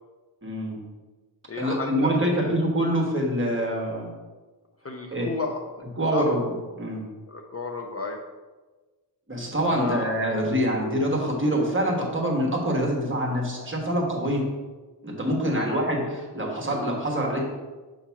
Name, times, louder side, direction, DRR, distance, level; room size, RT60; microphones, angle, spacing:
voice 1, 0.4-0.8 1.6-4.1 5.1-5.3 6.0-6.4 6.8-7.0 9.3-14.5 15.0-17.4, equal, 30° right, 0 dB, 1.2 m, -25 dB
voice 2, 1.5-2.5 4.8-5.7 6.1-6.3 7.3-8.2 9.7-10.0 15.5-15.8, left 4 dB, 35° left, 2 dB, 0.4 m, -32 dB
7.2 x 2.9 x 5.7 m, 1.3 s
wide cardioid pair, 180°, 43 cm